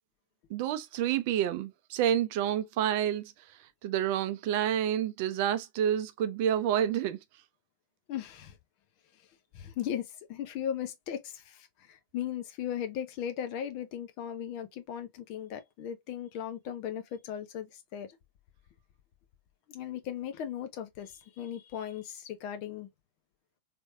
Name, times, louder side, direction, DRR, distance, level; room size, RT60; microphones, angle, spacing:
voice 1, 0.5-3.3 3.8-7.2, right 10 dB, 50° right, 0.5 m, -29 dB
voice 2, 8.1-8.6 9.5-18.1 19.7-22.9, left 9 dB, 45° left, 0.8 m, -37 dB
3.4 x 3.1 x 2.5 m
figure-of-eight pair, 90°, 0 cm